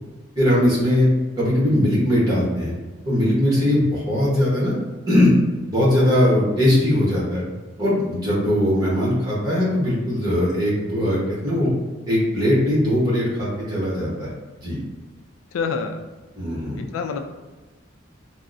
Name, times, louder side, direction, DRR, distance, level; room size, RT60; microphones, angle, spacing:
voice 1, 0.4-1.1 1.4-2.7 3.0-4.7 5.1-5.3 5.7-7.4 7.8-11.7 12.1-14.3 14.6-14.8 16.4-16.8, left 1 dB, 20° right, -7 dB, 0.9 m, -20 dB
voice 2, 15.5-16.0 16.8-17.3, left 5 dB, 80° left, 6 dB, 0.3 m, -27 dB
3.5 x 2.0 x 2.5 m, 1.2 s
head